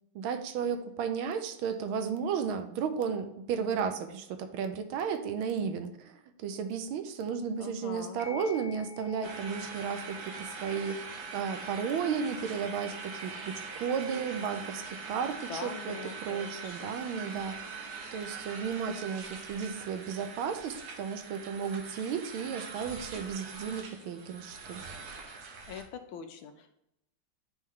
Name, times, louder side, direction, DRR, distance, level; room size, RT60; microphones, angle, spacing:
voice 1, 0.1-11.0 11.3-17.8 18.1-24.8, right 6 dB, 80° right, 8 dB, 1.4 m, -34 dB
voice 2, 7.6-8.2 15.5-17.4 25.7-26.8, left 7 dB, 75° left, 7 dB, 1.4 m, -44 dB
sound 1, 8.2-17.2, left 3 dB, 25° left, 0.6 m, -53 dB
sound 2, 9.2-25.8, right 4 dB, 60° right, 1.2 m, -43 dB
8.8 x 3.2 x 3.6 m, 0.82 s
omnidirectional pair, 2.3 m